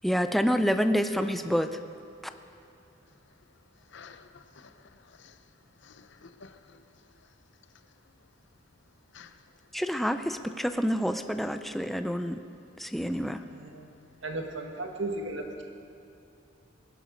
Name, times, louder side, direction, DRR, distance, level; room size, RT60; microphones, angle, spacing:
voice 1, 0.0-1.7 9.7-12.4 12.8-13.4, equal, ahead, 8 dB, 0.5 m, -27 dB
voice 2, 3.9-4.7 5.1-5.4 5.8-6.8 9.1-9.3, left 5 dB, 65° left, 9 dB, 0.8 m, -51 dB
voice 3, 13.5-13.9 14.2-15.6, right 2 dB, 70° right, 3 dB, 1.7 m, -35 dB
20.0 x 11.5 x 5.2 m, 2.6 s
head